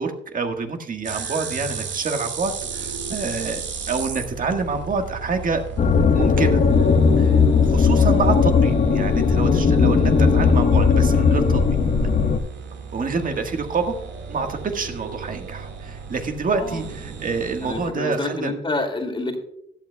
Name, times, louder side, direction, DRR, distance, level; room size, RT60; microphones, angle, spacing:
voice 1, 0.0-5.6 6.1-6.6 7.2-11.8 12.9-14.0 14.3-18.5, right 4 dB, 45° right, 5 dB, 1.6 m, -27 dB
sound 1, 1.0-17.9, right 5 dB, 65° right, 1.9 m, -35 dB
sound 2, 5.8-12.4, left 5 dB, 45° left, 1.1 m, -17 dB
voice 2, 17.6-19.4, left 2 dB, 25° left, 4 dB, 2.3 m, -28 dB
16.0 x 11.5 x 2.3 m, 0.77 s
cardioid pair, 90°, 20 cm